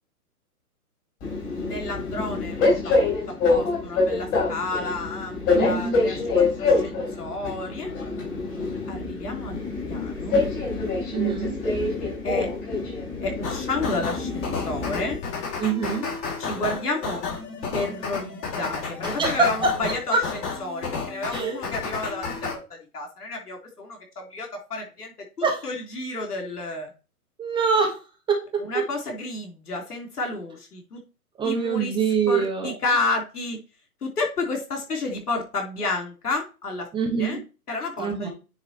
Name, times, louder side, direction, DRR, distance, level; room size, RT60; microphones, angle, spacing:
Train, 1.2-15.2, left 3 dB, 25° left, 3.8 m, -26 dB
voice 1, 1.6-2.6 2.8-3.0 3.3-7.9 8.9-9.6 9.9-10.4 12.2-12.5 13.2-15.2 16.4-17.2 17.7-20.2 20.6-22.6 22.9-25.1 25.4-26.9 28.7-31.0 31.4-31.9 32.3-33.6 34.0-36.9 37.2-37.4 37.7-38.3, left 3 dB, 75° left, 3 dB, 3.6 m, -31 dB
voice 2, 5.5-6.0 11.1-11.6 15.6-16.1 19.0-19.7 20.1-20.2 21.3-21.6 25.4-25.6 27.4-28.0 28.3-28.6 31.4-32.7 36.9-37.4 38.0-38.3, right 5 dB, 10° right, 2 dB, 1.3 m, -24 dB
sound 1, 13.4-22.5, left 5 dB, 45° left, 5.1 m, -32 dB
9.5 x 3.8 x 4.4 m, 0.32 s
hypercardioid pair, 135°, 46 cm